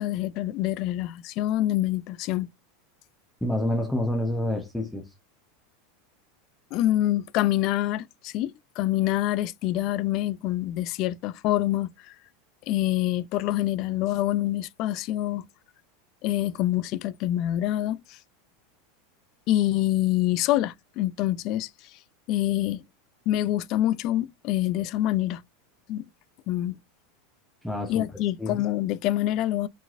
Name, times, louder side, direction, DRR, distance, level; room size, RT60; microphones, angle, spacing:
voice 1, 0.0-2.5 6.7-12.1 12.7-15.5 16.2-18.2 19.5-21.7 22.3-22.8 23.3-25.4 25.9-26.0 26.5-26.8 27.9-29.7, left 14 dB, 40° left, 0.4 m, -26 dB
voice 2, 3.4-5.1 27.6-28.0 28.4-28.6, left 1 dB, ahead, 0.8 m, -28 dB
4.8 x 3.9 x 2.5 m
supercardioid pair, 165°, 0 cm